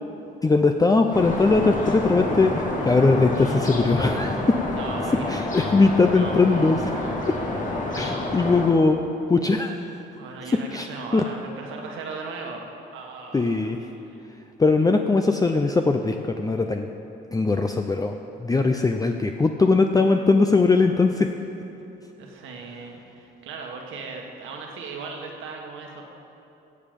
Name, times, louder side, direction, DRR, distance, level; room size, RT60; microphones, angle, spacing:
voice 1, 0.4-4.5 5.3-6.9 8.0-9.8 10.7-10.9 11.1-11.2 13.3-13.9 14.6-16.9 17.3-21.3, left 3 dB, 20° left, 5 dB, 0.6 m, -20 dB
sound 1, 1.1-8.7, left 2 dB, 40° left, 2.2 m, -28 dB
voice 2, 4.8-5.2 6.0-7.2 10.1-12.6 12.9-13.7 14.0-14.2 22.2-26.1, right 4 dB, 85° right, 1 dB, 1.7 m, -38 dB
16.5 x 7.3 x 5.3 m, 2.9 s
cardioid pair, 90°, 20 cm